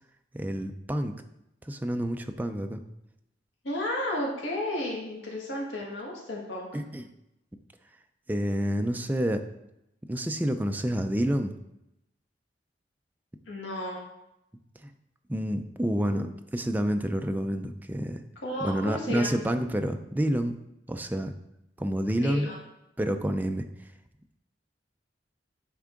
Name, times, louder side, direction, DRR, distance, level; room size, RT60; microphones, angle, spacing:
voice 1, 0.3-1.1 1.6-2.8 6.7-7.1 8.3-9.4 10.1-11.6 15.3-18.2 18.6-20.5 20.9-21.3 21.8-22.5 23.0-23.7, equal, 10° right, 6 dB, 0.4 m, -28 dB
voice 2, 3.6-6.7 13.5-14.0 18.4-19.3 22.1-22.6, left 1 dB, 80° left, -2 dB, 1.6 m, -33 dB
9.4 x 3.7 x 3.7 m, 0.85 s
head